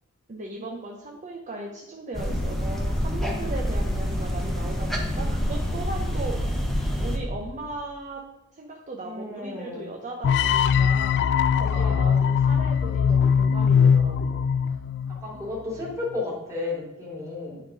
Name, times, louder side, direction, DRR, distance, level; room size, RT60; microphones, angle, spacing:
voice 1, 0.3-6.4 7.0-8.3 8.5-11.2 11.6-14.5, right 2 dB, 35° right, 0 dB, 0.8 m, -37 dB
sound 1, 2.1-7.2, equal, ahead, 1.1 m, -27 dB
voice 2, 9.0-9.8 11.5-12.1 15.2-17.6, left 2 dB, 15° right, -4 dB, 2.7 m, -33 dB
sound 2, 10.2-15.3, left 7 dB, 50° left, 0.3 m, -21 dB
9.8 x 4.0 x 5.1 m, 0.97 s
head